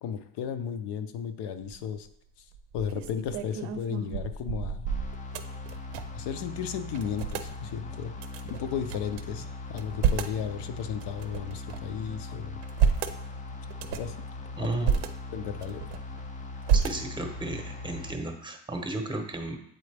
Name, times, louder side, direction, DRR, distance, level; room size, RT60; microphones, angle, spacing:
voice 1, 0.0-2.1 2.7-4.9 6.1-8.2 8.4-12.6 14.0-14.2 14.6-14.7 15.3-15.8, left 8 dB, 65° left, 9 dB, 0.6 m, -34 dB
sound 1, 1.6-2.0 2.5-6.3 6.5-6.6 6.9-7.5 8.2-9.2 9.7-10.4 11.0-12.0 12.5-13.2 13.7-14.2 14.6-15.1 15.6-16.2 16.7-17.4, right 7 dB, 75° right, 0.6 m, -30 dB
sound 2, 4.9-18.2, left 3 dB, 20° left, 0.4 m, -40 dB
voice 2, 14.6-15.0 16.7-19.6, right 2 dB, 10° right, 5 dB, 0.8 m, -33 dB
8.2 x 3.8 x 3.3 m, 0.74 s
cardioid pair, 115°, 44 cm